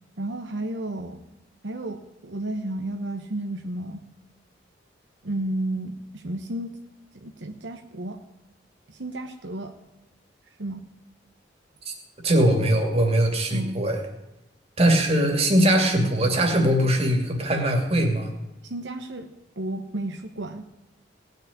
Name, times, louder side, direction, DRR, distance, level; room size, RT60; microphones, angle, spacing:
voice 1, 0.2-1.2 1.6-4.0 5.2-6.7 7.1-8.2 8.9-9.7 10.6-10.8 13.5-13.9 18.6-19.3 19.6-20.6, right 1 dB, 75° right, 5 dB, 1.0 m, -32 dB
voice 2, 12.2-14.0 14.8-18.3, right 1 dB, 35° right, 3 dB, 2.5 m, -21 dB
18.0 x 6.5 x 9.7 m, 0.95 s
head